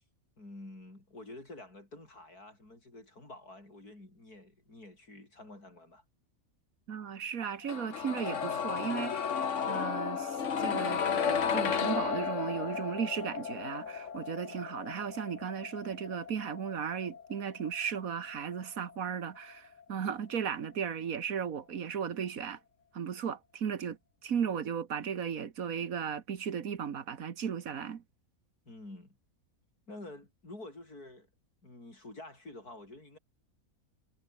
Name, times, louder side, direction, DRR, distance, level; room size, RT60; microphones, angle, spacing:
voice 1, 0.4-6.0 28.6-29.2 29.9-31.3 31.6-33.2, left 2 dB, 85° left, 8.0 m, -49 dB
voice 2, 6.9-22.6 22.9-28.0, right 7 dB, 65° right, 1.7 m, -36 dB
sound 1, 7.7-19.5 19.8-19.9, left 7 dB, 55° left, 1.6 m, -34 dB
omnidirectional pair, 1.6 m